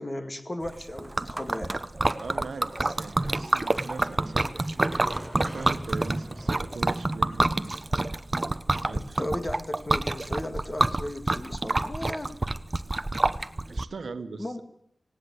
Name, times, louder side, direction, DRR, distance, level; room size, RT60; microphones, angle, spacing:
voice 1, 0.0-1.8 8.9-12.4 14.4-14.6, left 1 dB, 25° left, 7 dB, 2.0 m, -35 dB
Liquid, 0.7-13.8, right 2 dB, 30° right, 0.8 m, -27 dB
sound 1, 1.9-9.7, equal, 10° right, 7.3 m, -45 dB
voice 2, 2.2-4.5 5.3-7.7 8.7-9.2 13.7-14.6, right 4 dB, 90° right, 9 dB, 1.3 m, -40 dB
18.5 x 17.5 x 8.1 m, 0.73 s
wide cardioid pair, 95°, 0 cm